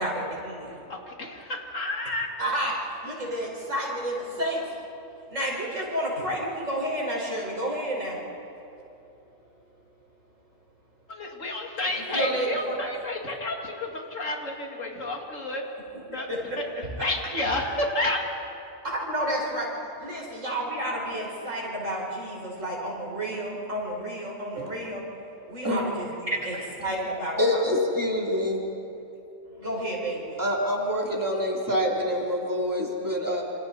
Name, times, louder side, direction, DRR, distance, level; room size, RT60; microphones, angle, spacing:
voice 1, 0.0-0.8 2.4-4.8 5.3-8.2 12.1-12.8 16.3-17.1 18.8-25.0 25.5-27.6 29.5-30.4, right 1 dB, 90° right, -3 dB, 5.6 m, -31 dB
voice 2, 0.9-2.3 11.1-15.6 16.1-16.3 16.6-16.7 17.0-18.2, left 1 dB, 90° left, 1 dB, 2.8 m, -30 dB
voice 3, 26.3-26.7 27.4-28.6 30.4-33.4, equal, 15° right, -3 dB, 3.3 m, -26 dB
27.5 x 27.0 x 4.2 m, 2.8 s
omnidirectional pair, 1.3 m